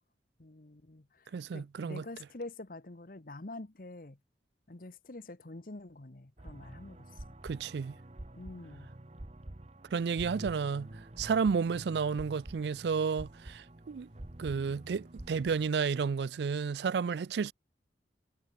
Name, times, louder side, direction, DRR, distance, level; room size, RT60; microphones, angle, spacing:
voice 1, 0.4-4.2 4.7-7.4 8.3-8.9 10.4-10.5, left 2 dB, 50° left, 1.1 m, -46 dB
voice 2, 1.3-2.0 7.4-7.9 9.9-10.9 11.2-14.1 14.4-17.5, right 5 dB, 70° right, 0.4 m, -31 dB
sound 1, 6.4-15.7, right 1 dB, 35° right, 1.0 m, -48 dB
head